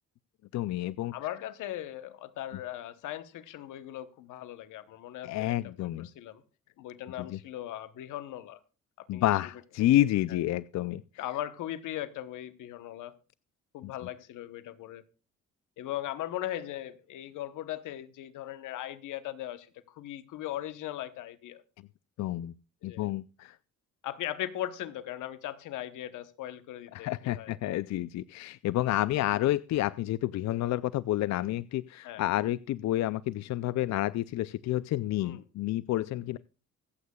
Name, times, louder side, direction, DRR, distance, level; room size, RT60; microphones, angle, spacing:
voice 1, 0.5-1.1 5.2-6.1 7.2-7.4 9.1-11.0 13.8-13.9 22.2-22.5 22.8-23.6 26.9-36.4, left 14 dB, 65° left, 0.5 m, -29 dB
voice 2, 1.1-6.4 6.8-8.6 9.0-9.2 9.8-9.9 11.2-13.1 13.7-15.0 15.8-21.6 22.8-23.1 24.0-27.6 32.0-32.2 35.2-35.4, left 13 dB, 85° left, 1.0 m, -39 dB
24.5 x 8.3 x 2.3 m
cardioid pair, 90°, 30 cm